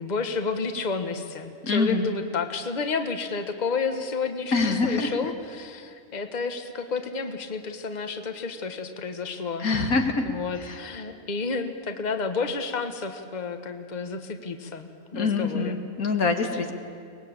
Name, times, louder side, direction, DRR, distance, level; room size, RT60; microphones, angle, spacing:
voice 1, 0.0-9.9 10.2-15.8, left 4 dB, 30° left, 7 dB, 1.4 m, -31 dB
voice 2, 1.6-2.1 4.5-5.1 9.6-10.3 10.6-10.8 15.1-16.7, left 4 dB, 85° left, 5 dB, 2.3 m, -25 dB
24.0 x 20.5 x 8.8 m, 2.4 s
omnidirectional pair, 1.5 m